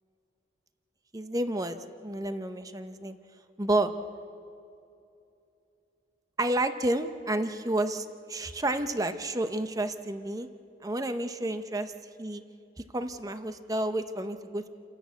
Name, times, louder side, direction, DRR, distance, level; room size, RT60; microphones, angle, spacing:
voice 1, 1.1-3.2 3.6-3.9 6.4-10.5 10.8-11.9 12.2-12.4 12.8-14.7, right 1 dB, 20° right, 9 dB, 0.7 m, -30 dB
29.5 x 11.0 x 8.2 m, 2.7 s
head